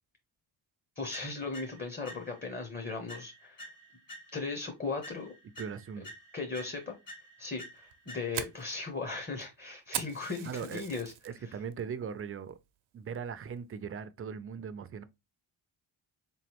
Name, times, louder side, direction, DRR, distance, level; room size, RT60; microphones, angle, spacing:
voice 1, 1.0-3.7 4.3-5.3 6.3-6.9 7.4-11.1 11.4-11.6, left 4 dB, 20° left, 0.8 m, -37 dB
sound 1, 1.1-2.6 3.1-4.6 5.0-8.6, equal, 40° left, 1.8 m, -50 dB
voice 2, 5.6-6.1 10.4-12.6 12.9-15.0, right 7 dB, 30° right, 0.4 m, -39 dB
Fire, 7.8-11.3 11.7-12.1 12.5-12.6 13.2-13.5, right 12 dB, 80° right, 0.6 m, -40 dB
3.7 x 3.1 x 2.9 m
cardioid pair, 90°, 47 cm